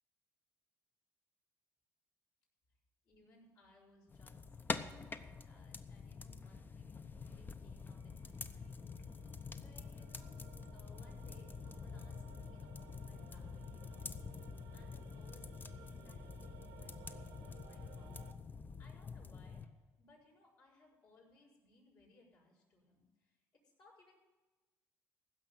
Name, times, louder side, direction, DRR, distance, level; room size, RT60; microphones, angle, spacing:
voice 1, 3.0-14.4 14.7-18.4 18.8-19.6 20.0-23.4 23.8-24.2, left 2 dB, 60° left, -3 dB, 5.7 m, -66 dB
sound 1, 4.1-19.7, left 4 dB, 30° left, 0.8 m, -47 dB
sound 2, 8.0-18.3, right 9 dB, 85° right, 1.1 m, -60 dB
15.5 x 6.2 x 8.9 m, 1.2 s
supercardioid pair, 80°, 7 cm